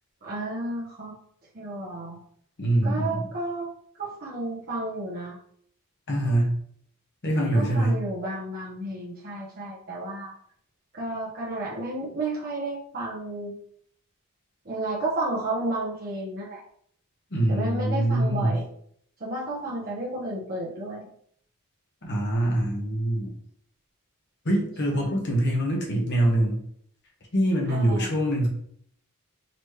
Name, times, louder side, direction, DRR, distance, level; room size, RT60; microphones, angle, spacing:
voice 1, 0.2-1.1 1.5-2.2 2.8-3.7 4.0-5.4 7.5-10.3 10.9-13.5 14.6-16.6 17.5-18.7 19.2-21.0 24.9-25.1 27.7-28.1, right 2 dB, 45° right, -7 dB, 1.0 m, -32 dB
voice 2, 2.6-3.2 6.1-6.5 7.2-8.0 17.3-18.6 22.0-23.3 24.4-26.6 27.3-28.5, right 1 dB, 50° left, -1 dB, 1.2 m, -24 dB
4.1 x 3.0 x 3.2 m, 0.64 s
head